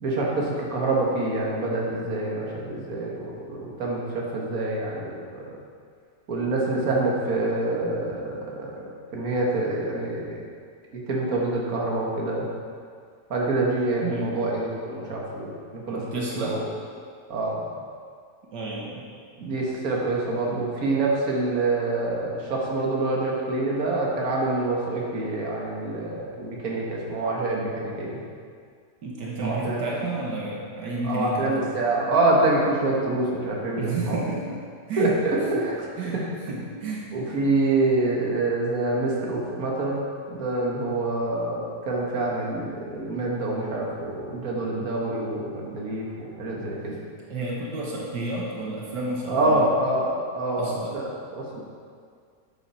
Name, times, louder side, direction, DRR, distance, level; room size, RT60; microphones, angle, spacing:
voice 1, 0.0-5.5 6.3-10.4 11.1-12.5 13.3-16.6 17.3-17.7 19.4-28.2 29.4-29.8 31.0-34.2 35.0-35.8 36.1-36.2 37.1-40.0 40.3-47.0 49.3-51.6, right 2 dB, 55° right, -3 dB, 2.0 m, -26 dB
voice 2, 14.0-14.3 15.9-16.6 18.5-19.1 29.0-31.6 33.8-34.6 34.9-35.1 36.0-36.2 36.5-37.1 47.3-49.7 50.6-51.0, right 2 dB, 80° right, -3 dB, 1.9 m, -31 dB
12.0 x 7.8 x 4.4 m, 2.1 s
omnidirectional pair, 1.8 m